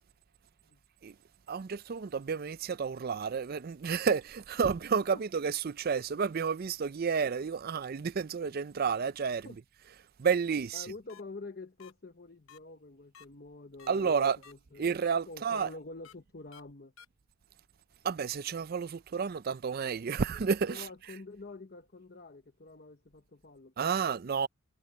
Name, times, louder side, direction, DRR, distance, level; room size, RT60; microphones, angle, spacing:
voice 1, 1.5-9.5 10.2-10.9 13.9-14.4 14.8-15.7 18.0-20.9 23.8-24.5, right 6 dB, 45° right, 0.4 m, -31 dB
voice 2, 10.7-14.9 15.3-16.9 20.7-24.1, left 3 dB, 45° left, 1.0 m, -47 dB
sound 1, 11.1-11.2 11.8-11.9 12.5-12.6 13.1-13.2 13.8-13.9 14.4-14.5 15.0-15.1 15.5-15.7 16.0-16.1 16.5-16.6 17.0-17.1, left 7 dB, 70° left, 0.9 m, -53 dB
head